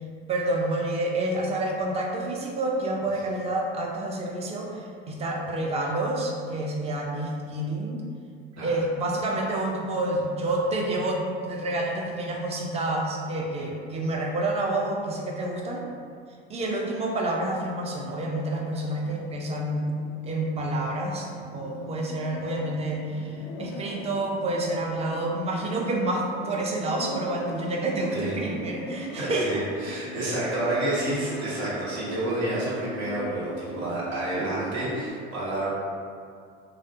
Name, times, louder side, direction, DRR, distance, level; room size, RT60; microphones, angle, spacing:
voice 1, 0.3-8.0 8.6-15.8 16.5-19.9 20.2-30.0, right 1 dB, 20° right, 0 dB, 0.3 m, -28 dB
sound 1, 18.8-35.1, left 1 dB, 70° left, 0.5 m, -40 dB
voice 2, 29.2-35.7, right 1 dB, 85° right, -8 dB, 0.8 m, -29 dB
2.4 x 2.0 x 2.5 m, 2.2 s
hypercardioid pair, 75°, 32 cm